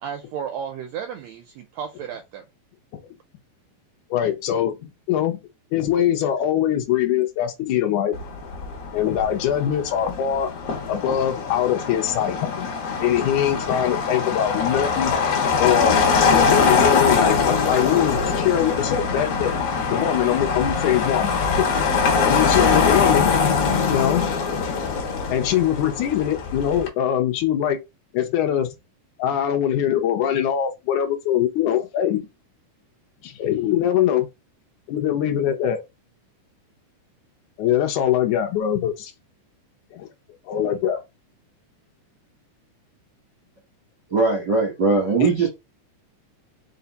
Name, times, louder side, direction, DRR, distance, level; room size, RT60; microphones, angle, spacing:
voice 1, 0.0-2.4, right 8 dB, 85° right, 1.5 m, -33 dB
voice 2, 4.1-5.4 5.7-8.2 8.9-10.5 10.9-12.7 13.0-15.2 15.6-16.0 16.3-19.5 19.9-21.7 22.2-23.3 23.9-24.3 25.3-27.8 28.1-28.7 29.2-32.2 33.2-34.3 34.9-35.8 37.6-39.1 39.9-40.1 40.5-41.0 45.2-45.3, left 10 dB, 75° left, 2.1 m, -22 dB
Motor vehicle (road), 8.1-26.9, left 5 dB, 60° left, 2.0 m, -22 dB
voice 3, 44.1-45.5, right 4 dB, 65° right, 1.0 m, -20 dB
4.9 x 2.3 x 4.0 m
omnidirectional pair, 3.7 m